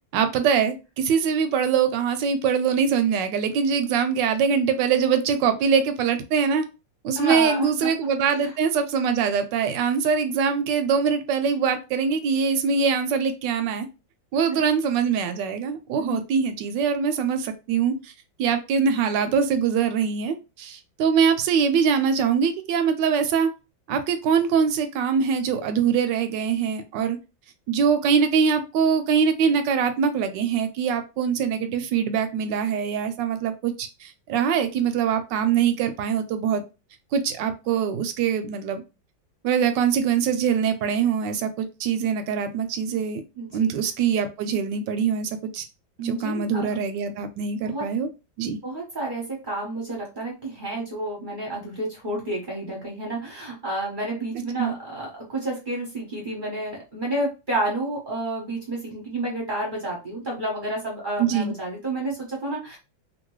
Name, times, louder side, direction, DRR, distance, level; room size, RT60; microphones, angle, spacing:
voice 1, 0.1-6.6 7.0-13.9 14.3-18.1 18.4-23.5 23.9-27.2 27.7-36.6 37.1-38.8 39.4-43.2 43.5-45.6 46.0-48.1 48.4-48.6 54.6-54.7 61.2-61.5, right 6 dB, 75° right, 8 dB, 1.1 m, -23 dB
voice 2, 7.2-7.9 8.4-8.5 14.5-14.6 16.0-16.2 43.4-43.7 46.0-46.6 47.6-47.9 48.6-62.8, right 2 dB, 35° right, -2 dB, 0.8 m, -30 dB
2.9 x 2.8 x 3.0 m, 0.28 s
omnidirectional pair, 2.1 m